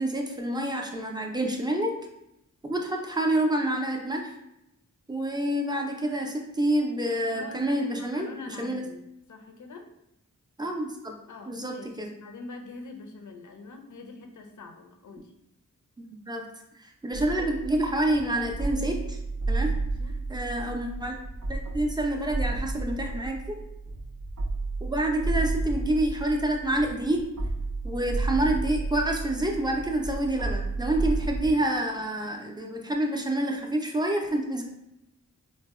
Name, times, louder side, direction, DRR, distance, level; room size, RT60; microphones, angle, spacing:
voice 1, 0.0-1.9 2.6-4.3 5.1-8.8 10.6-11.1 11.5-12.1 16.1-16.5 16.8-19.2 19.5-19.8 20.3-21.2 21.5-23.6 24.8-27.2 27.8-34.6, right 1 dB, 15° right, 2 dB, 0.4 m, -28 dB
voice 2, 7.3-9.0 9.3-9.9 11.3-15.3 20.0-20.2, left 3 dB, 65° left, 4 dB, 0.5 m, -44 dB
sound 1, 17.1-31.5, right 3 dB, 70° right, 0.5 m, -32 dB
3.9 x 2.0 x 2.3 m, 0.86 s
wide cardioid pair, 70°, 33 cm